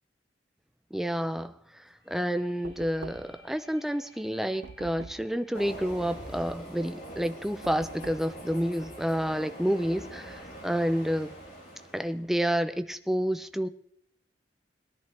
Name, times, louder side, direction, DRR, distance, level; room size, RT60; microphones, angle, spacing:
voice 1, 0.9-11.3 11.9-13.7, equal, ahead, 10 dB, 0.6 m, -29 dB
sound 1, 1.9-7.7, left 2 dB, 75° left, 5.9 m, -60 dB
Knock, 2.6-3.5 4.6-5.4 7.6-8.4, right 5 dB, 80° right, 0.4 m, -45 dB
Train, 5.5-12.2, right 1 dB, 50° left, 4.0 m, -44 dB
21.5 x 10.5 x 3.4 m, 0.73 s
head